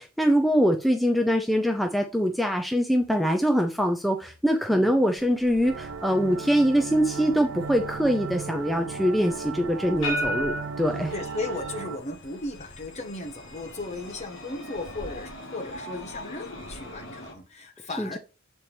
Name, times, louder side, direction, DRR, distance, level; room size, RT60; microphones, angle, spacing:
voice 1, 0.0-11.1 18.0-18.2, equal, ahead, 0.5 m, -23 dB
sound 1, 5.1-17.3, equal, 60° left, 1.5 m, -39 dB
sound 2, 5.6-12.0, right 5 dB, 70° right, 0.5 m, -36 dB
voice 2, 11.1-18.2, left 2 dB, 30° left, 0.9 m, -36 dB
7.4 x 4.3 x 3.3 m
head